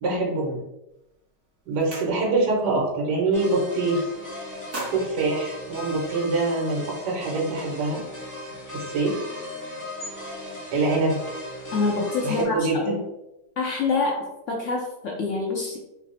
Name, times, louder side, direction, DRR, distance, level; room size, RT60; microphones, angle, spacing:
voice 1, 0.0-0.6 1.7-4.1 4.9-8.0 8.7-9.2 10.7-11.2 12.2-13.0, right 3 dB, 75° right, -2 dB, 1.4 m, -24 dB
sound 1, 0.9-1.1 1.5-2.6 3.0-3.2 3.5-4.1 4.4-6.3, right 1 dB, 40° right, 0.9 m, -39 dB
sound 2, 3.3-12.4, left 1 dB, 20° left, 0.5 m, -37 dB
voice 2, 11.7-13.0 13.6-15.8, left 3 dB, 75° left, -1 dB, 0.7 m, -26 dB
3.3 x 2.0 x 3.9 m, 0.91 s
omnidirectional pair, 1.8 m